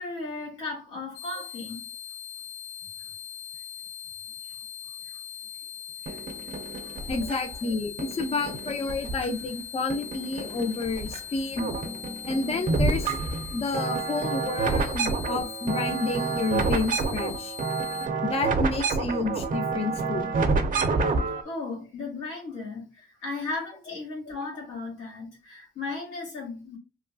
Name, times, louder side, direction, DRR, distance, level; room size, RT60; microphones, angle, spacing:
voice 1, 0.0-1.9 6.0-6.2 6.8-6.9 7.2-7.5 21.4-26.8, left 3 dB, 90° left, 1.4 m, -36 dB
sound 1, 1.1-18.1, left 9 dB, 60° left, 0.8 m, -41 dB
sound 2, 6.1-7.5 8.0-9.6 9.9-11.2 11.5-21.4, right 4 dB, 45° right, 0.6 m, -28 dB
voice 2, 7.1-11.7 12.3-13.1 13.5-17.5 18.2-20.3, left 3 dB, 30° left, 0.5 m, -30 dB
2.9 x 2.2 x 2.6 m
cardioid pair, 90°, 20 cm